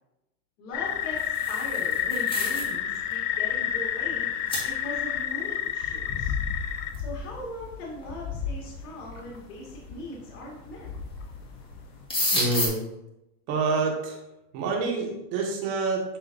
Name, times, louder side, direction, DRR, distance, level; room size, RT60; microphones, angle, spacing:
voice 1, 0.6-4.3 4.6-6.4 7.0-10.9, left 1 dB, 60° left, -4 dB, 1.9 m, -40 dB
sound 1, 0.7-12.0, left 9 dB, 45° left, 0.7 m, -30 dB
sound 2, 1.0-2.8 3.1-3.3 4.0-4.1 4.5-4.7 6.9-7.0 8.0-8.1 8.8-9.3 10.5-11.0 11.3-11.5 11.7-12.7, left 1 dB, 10° left, 1.6 m, -30 dB
voice 2, 12.3-12.8 13.5-14.2 14.5-16.2, right 3 dB, 50° right, 0 dB, 1.9 m, -27 dB
10.5 x 3.7 x 2.6 m, 0.90 s
supercardioid pair, 130°, 48 cm